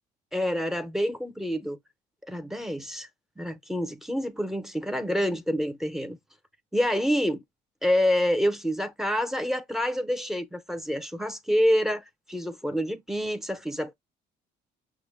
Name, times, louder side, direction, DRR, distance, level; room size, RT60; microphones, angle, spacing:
voice 1, 0.3-1.8 2.3-3.1 3.4-6.2 6.7-7.4 7.8-13.9, equal, ahead, 0.6 m, -27 dB
6.1 x 2.1 x 3.5 m
cardioid pair, 110°, 17 cm